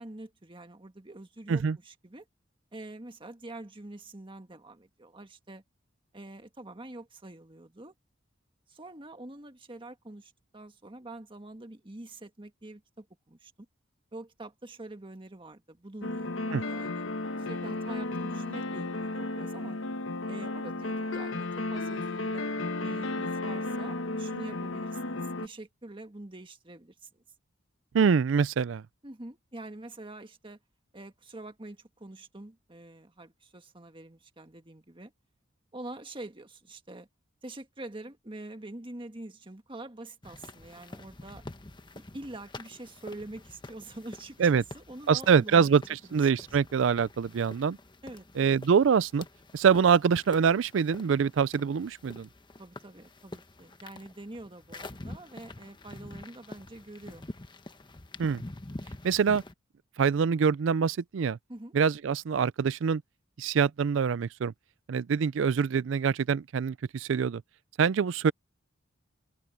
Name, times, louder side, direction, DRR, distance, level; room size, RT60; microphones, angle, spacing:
voice 1, 0.0-2.3 2.7-5.6 6.1-7.9 8.7-13.5 14.1-17.1 17.4-19.8 20.3-27.2 29.0-30.6 30.9-35.1 35.7-37.1 37.4-41.5 41.9-45.7 46.0-46.3 48.0-48.6 52.6-57.2 61.5-61.7, right 2 dB, 25° right, 1.7 m, -45 dB
sound 1, 16.0-25.5, left 2 dB, 80° left, 1.1 m, -33 dB
voice 2, 27.9-28.8 44.4-44.6 45.1-45.8 46.1-47.8 48.4-49.2 49.5-52.3 58.2-58.4 59.0-59.4 60.0-61.4 61.7-63.0 63.4-64.5 64.9-67.4 67.8-68.3, right 6 dB, 70° right, 0.4 m, -24 dB
sound 2, 40.2-59.5, left 2 dB, 25° left, 1.0 m, -47 dB
head